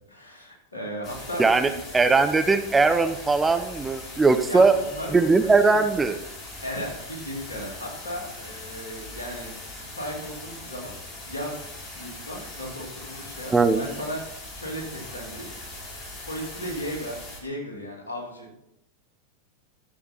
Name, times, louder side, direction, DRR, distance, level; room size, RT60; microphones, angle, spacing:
voice 1, 0.1-1.8 4.5-5.8 6.6-9.5 9.8-10.9 11.3-11.7 11.9-15.5 16.2-18.5, equal, 75° left, -1 dB, 2.7 m, -36 dB
sound 1, 1.0-17.4, left 2 dB, 30° left, 2.8 m, -40 dB
voice 2, 1.4-4.7 5.1-6.2 13.5-13.8, right 4 dB, 10° right, 9 dB, 0.6 m, -20 dB
11.0 x 7.0 x 4.2 m, 0.84 s
figure-of-eight pair, 90°, 0 cm